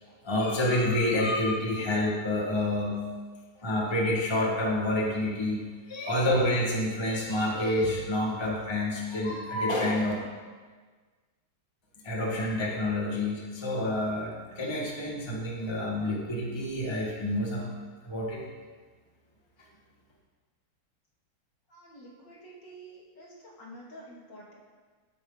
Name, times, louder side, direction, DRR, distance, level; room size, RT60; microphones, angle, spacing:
voice 1, 0.2-3.0 3.6-5.6 5.9-10.1 12.0-17.7 18.0-18.4, left 1 dB, 15° left, -3 dB, 1.8 m, -28 dB
voice 2, 21.7-24.6, right 1 dB, 55° left, -4 dB, 3.2 m, -49 dB
19.0 x 8.7 x 4.0 m, 1.5 s
omnidirectional pair, 2.4 m